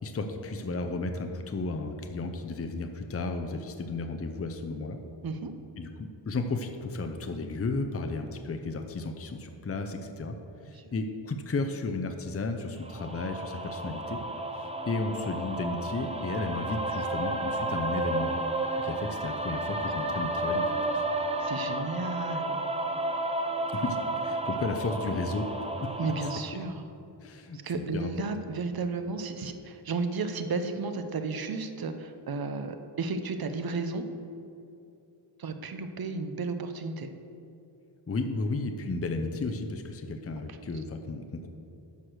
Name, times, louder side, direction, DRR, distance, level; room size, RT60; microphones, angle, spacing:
voice 1, 0.0-5.0 5.8-10.4 10.6-14.2 14.6-18.3 18.8-21.0 23.7-25.5 25.8-25.9 27.2-28.1 38.1-41.5, left 3 dB, 30° left, 5 dB, 0.6 m, -33 dB
sound 1, 12.8-26.4, right 2 dB, 15° right, 0.7 m, -32 dB
voice 2, 21.1-22.6 26.0-26.8 27.5-34.0 35.4-37.1 40.5-40.6, right 4 dB, 55° right, 8 dB, 0.8 m, -33 dB
12.0 x 4.9 x 6.3 m, 2.7 s
wide cardioid pair, 115°, 45 cm